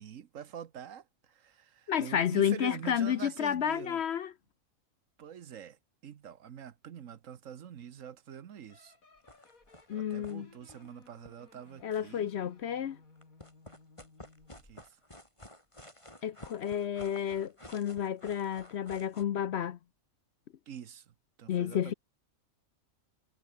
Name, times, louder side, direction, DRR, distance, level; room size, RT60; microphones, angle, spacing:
voice 1, 0.0-4.0 5.2-9.0 9.9-12.3 14.6-15.0 20.7-21.9, right 9 dB, 70° right, 1.4 m, -46 dB
voice 2, 1.9-4.3 9.9-10.5 11.8-13.0 16.2-19.8 21.5-21.9, left 9 dB, 60° left, 0.8 m, -31 dB
sound 1, 8.7-14.7, left 3 dB, 90° left, 3.9 m, -60 dB
sound 2, 9.2-9.9 10.2-10.4 10.6-12.0 13.2-19.2, left 1 dB, 20° left, 6.1 m, -52 dB
omnidirectional pair, 1.4 m